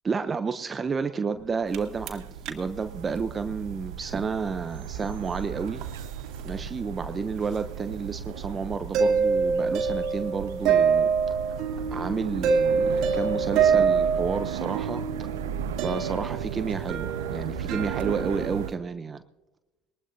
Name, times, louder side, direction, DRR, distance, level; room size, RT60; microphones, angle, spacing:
voice 1, 0.0-5.8 6.4-11.4 11.9-15.3 15.8-19.2, right 5 dB, 30° right, 10 dB, 0.8 m, -31 dB
sound 1, 1.4-18.7, right 11 dB, 75° right, 0.6 m, -37 dB
sound 2, 1.7-2.2 2.5-2.6 2.8-2.9 3.1-3.5 4.7-5.1 5.5-18.7, right 5 dB, 55° right, 2.2 m, -26 dB
21.0 x 20.0 x 2.8 m, 1.0 s
hypercardioid pair, 65°, 0 cm